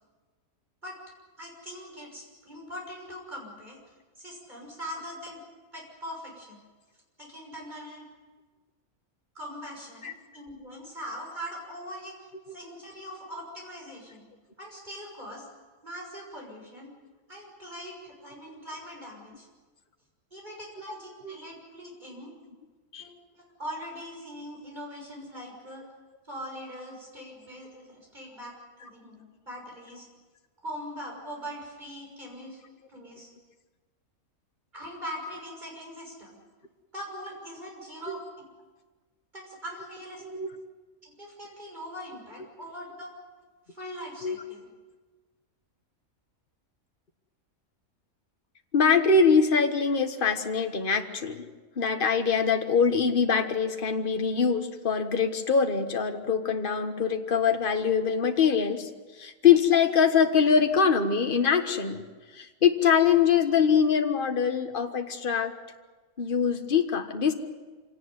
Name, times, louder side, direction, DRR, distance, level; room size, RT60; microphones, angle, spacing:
voice 1, 1.4-3.8 4.2-5.4 5.7-6.6 7.2-8.1 9.3-12.2 12.5-14.3 14.6-15.5 15.8-16.9 17.3-19.5 20.3-22.3 23.0-25.8 26.2-28.5 28.8-30.1 30.6-32.6 32.9-33.3 34.7-36.4 36.9-38.2 39.3-40.2 41.0-43.1 43.7-44.7, equal, 30° right, -1 dB, 6.5 m, -41 dB
voice 2, 48.7-51.4 51.8-58.9 59.2-62.0 62.3-65.5 66.2-67.3, left 6 dB, 40° left, 6 dB, 1.6 m, -23 dB
26.0 x 18.0 x 9.6 m, 1.3 s
omnidirectional pair, 1.5 m